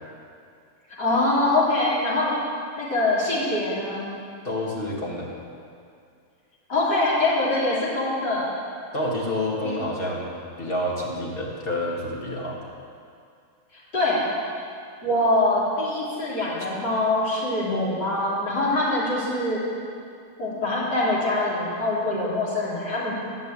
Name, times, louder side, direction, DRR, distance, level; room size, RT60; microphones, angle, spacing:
voice 1, 1.0-2.4 2.8-4.1 6.7-8.5 9.6-9.8 13.7-14.3 15.0-19.6 20.4-23.1, left 2 dB, 70° left, -8 dB, 3.5 m, -24 dB
voice 2, 4.4-5.3 8.9-12.6, left 1 dB, 35° left, -3 dB, 1.9 m, -28 dB
11.5 x 5.5 x 8.5 m, 2.4 s
omnidirectional pair, 1.9 m